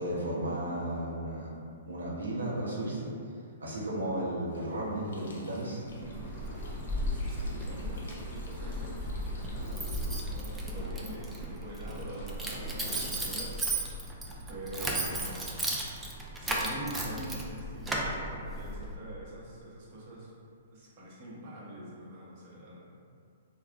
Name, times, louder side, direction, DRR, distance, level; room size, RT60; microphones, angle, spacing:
voice 1, 0.0-1.5 1.9-3.1 3.6-6.1, right 1 dB, 90° right, -6 dB, 0.8 m, -34 dB
Water Pipe, 4.5-12.8, left 1 dB, 70° left, 0.6 m, -53 dB
Keys jangling, 5.9-19.0, right 1 dB, 10° right, 0.4 m, -35 dB
sound 1, 6.1-13.3, left 1 dB, 40° left, 1.1 m, -49 dB
voice 2, 7.0-13.6 14.5-15.5 16.4-20.3 20.7-22.9, right 1 dB, 45° right, -7 dB, 0.9 m, -44 dB
3.4 x 2.3 x 2.4 m, 2.4 s
hypercardioid pair, 125°, 0 cm